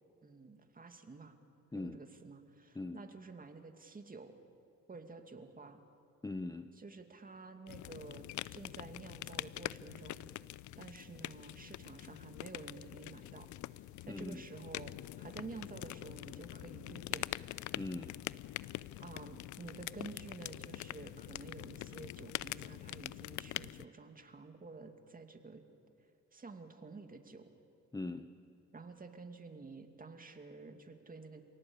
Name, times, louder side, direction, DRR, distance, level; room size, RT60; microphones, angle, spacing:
voice 1, 0.2-1.4 1.7-4.3 4.9-5.8 6.8-10.3 10.8-13.5 14.1-17.3 18.7-25.6 26.3-27.5 28.7-31.4, right 4 dB, 30° right, 6 dB, 2.4 m, -50 dB
voice 2, 1.7-2.0 2.7-3.0 6.2-6.7 14.1-14.5 17.8-18.2 27.9-28.3, left 2 dB, 10° left, 9 dB, 0.8 m, -41 dB
sound 1, 7.7-23.8, left 16 dB, 75° left, 0.5 m, -44 dB
28.5 x 18.0 x 8.7 m, 2.5 s
cardioid pair, 90°, 30 cm